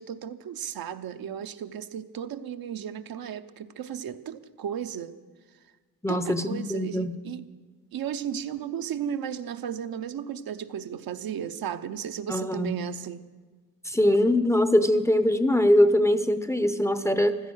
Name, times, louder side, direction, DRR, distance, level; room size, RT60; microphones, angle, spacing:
voice 1, 0.0-5.2 6.1-7.5 7.9-13.2, right 9 dB, 75° right, 9 dB, 0.8 m, -35 dB
voice 2, 6.0-7.2 12.3-12.8 13.9-17.4, left 1 dB, 10° left, 10 dB, 0.6 m, -22 dB
15.5 x 13.0 x 6.3 m, 1.4 s
wide cardioid pair, 160°, 36 cm